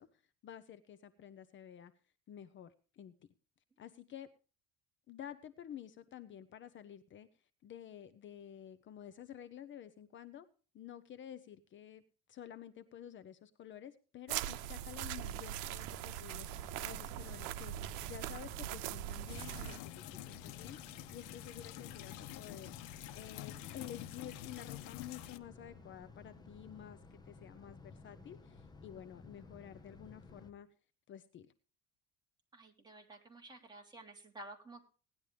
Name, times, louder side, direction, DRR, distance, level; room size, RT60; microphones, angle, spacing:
voice 1, 0.0-1.9 2.3-3.1 3.8-4.3 5.1-10.5 10.7-30.7 31.1-31.5, left 10 dB, 40° left, 11 dB, 0.9 m, -51 dB
sound 1, 14.3-19.8, right 12 dB, 90° right, 0.8 m, -41 dB
sound 2, 16.4-30.5, left 3 dB, 15° left, 1.2 m, -56 dB
sound 3, 19.3-25.4, left 12 dB, 90° left, 1.1 m, -48 dB
voice 2, 32.5-34.8, right 2 dB, 15° right, 1 dB, 3.1 m, -52 dB
18.0 x 11.0 x 3.4 m, 0.37 s
cardioid pair, 135°, 29 cm